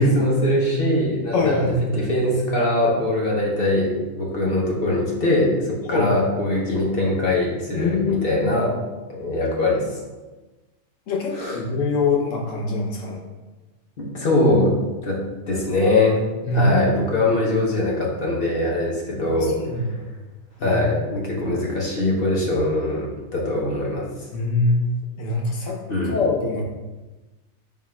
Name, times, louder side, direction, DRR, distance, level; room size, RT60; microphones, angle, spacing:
voice 1, 0.0-8.8 9.1-10.0 11.3-11.6 14.0-15.2 15.5-16.2 16.5-20.0 20.6-24.1 25.9-26.2, left 1 dB, 50° left, -2 dB, 0.9 m, -22 dB
voice 2, 1.3-1.9 5.9-6.1 7.8-8.2 11.1-13.2 16.4-16.8 19.4-19.8 20.6-20.8 24.3-24.8 25.2-25.8 26.1-26.6, left 3 dB, 70° left, -2 dB, 1.2 m, -23 dB
3.8 x 2.4 x 4.2 m, 1.2 s
omnidirectional pair, 1.3 m